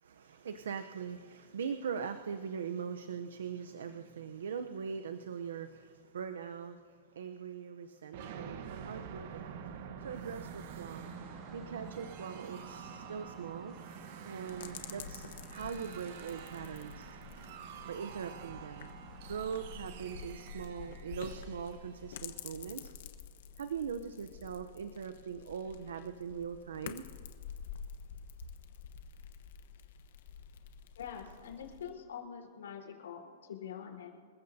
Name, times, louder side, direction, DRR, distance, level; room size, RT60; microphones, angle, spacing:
voice 1, 0.0-9.5 10.0-11.1 11.5-13.7 14.2-17.2 17.8-18.9 19.2-22.9 23.6-27.0, right 7 dB, 85° right, 8 dB, 0.8 m, -41 dB
sound 1, 8.1-22.8, right 7 dB, 50° right, 1.2 m, -48 dB
sound 2, 10.9-19.4, right 1 dB, 15° right, 1.9 m, -57 dB
sound 3, 14.5-31.9, left 7 dB, 65° left, 1.2 m, -49 dB
voice 2, 31.0-34.1, left 8 dB, 90° left, 0 dB, 4.1 m, -45 dB
27.0 x 14.5 x 2.8 m, 2.1 s
hypercardioid pair, 150°, 0 cm